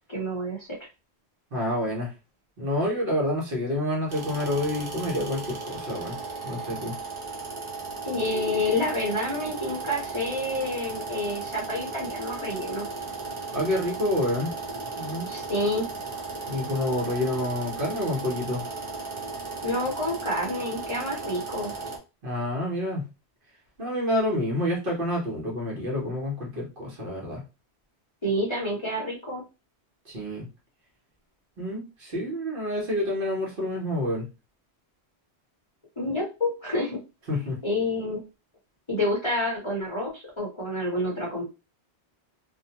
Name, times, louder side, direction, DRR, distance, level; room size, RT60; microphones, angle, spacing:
voice 1, 0.1-0.7 8.0-12.9 15.3-15.9 19.6-21.7 28.2-29.4 36.0-37.0 37.6-38.2 38.9-41.5, left 1 dB, 30° left, -4 dB, 0.8 m, -28 dB
voice 2, 1.5-2.1 2.6-6.2 6.4-6.9 13.5-14.5 15.0-15.3 16.5-18.6 22.2-23.1 23.8-27.4 30.1-30.5 31.6-34.2 37.3-37.6, left 1 dB, 55° right, -2 dB, 1.1 m, -28 dB
sound 1, 4.1-22.0, right 3 dB, 35° right, 0.6 m, -36 dB
2.6 x 2.1 x 2.8 m, 0.29 s
omnidirectional pair, 1.1 m